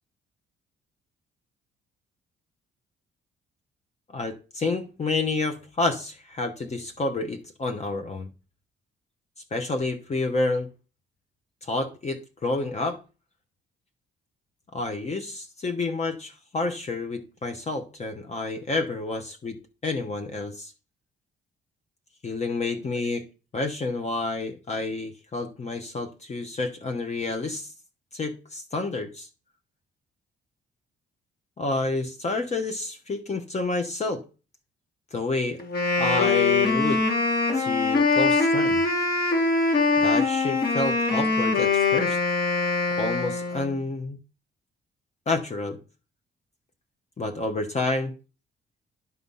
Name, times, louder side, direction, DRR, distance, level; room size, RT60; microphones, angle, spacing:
voice 1, 4.1-8.3 9.5-10.7 11.6-13.0 14.7-20.7 22.2-23.2 23.5-27.7 28.1-29.3 31.6-34.2 35.1-35.6 36.0-37.0 37.5-38.8 40.0-42.2 43.0-44.2 45.3-45.8 47.2-48.1, left 3 dB, 35° left, 1.0 m, -29 dB
Wind instrument woodwind instrument, 35.6-43.8, left 3 dB, 50° left, 2.2 m, -23 dB
11.0 x 4.0 x 5.5 m
cardioid pair, 90°, 20 cm